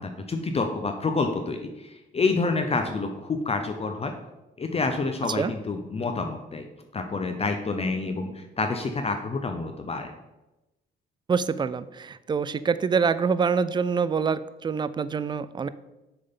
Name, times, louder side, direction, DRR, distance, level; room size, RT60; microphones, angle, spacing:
voice 1, 0.0-4.1 4.6-6.7 6.9-10.1, left 3 dB, 30° left, 5 dB, 0.6 m, -28 dB
voice 2, 11.3-15.7, right 5 dB, 25° right, 15 dB, 0.3 m, -25 dB
6.7 x 3.8 x 5.4 m, 1.0 s
cardioid pair, 90°, 20 cm